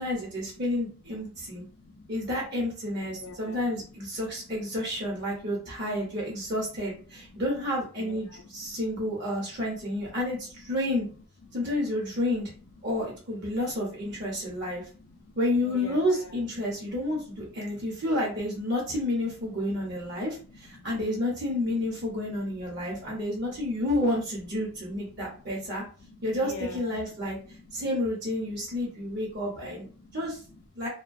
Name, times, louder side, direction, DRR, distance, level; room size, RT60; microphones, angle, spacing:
voice 1, 0.0-1.6 2.1-11.1 11.5-12.5 12.8-14.8 15.4-25.8 26.2-27.4 27.7-29.9 30.1-30.4 30.7-30.9, left 1 dB, 50° right, -3 dB, 0.8 m, -30 dB
voice 2, 1.5-2.1 3.0-3.6 5.3-5.5 7.2-7.3 8.0-9.1 11.6-11.7 13.5-13.6 14.3-15.3 15.6-16.3 17.1-17.2 17.5-18.0 19.7-19.8 20.0-20.9 22.4-22.5 22.7-23.5 24.9-27.9 28.6-29.7 30.0-30.1 30.5-30.6, left 3 dB, 75° left, 5 dB, 0.5 m, -47 dB
2.3 x 2.1 x 2.5 m, 0.40 s
head